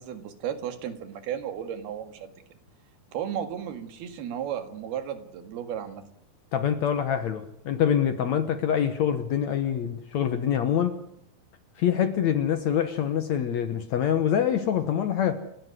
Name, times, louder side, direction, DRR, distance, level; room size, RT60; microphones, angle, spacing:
voice 1, 0.0-2.3 3.1-6.0, right 9 dB, 80° right, 3.9 m, -34 dB
voice 2, 6.5-11.0 11.8-15.4, left 9 dB, 65° left, 2.0 m, -25 dB
29.0 x 12.5 x 9.7 m
omnidirectional pair, 4.4 m